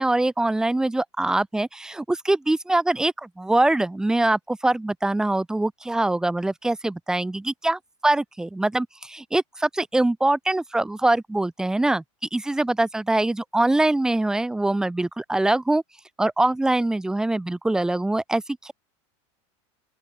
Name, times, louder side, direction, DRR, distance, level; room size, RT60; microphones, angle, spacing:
voice 1, 0.0-12.0 12.3-15.8 16.2-18.7, right 2 dB, 5° right, 5.2 m, -23 dB
open air
supercardioid pair, 170°, 15 cm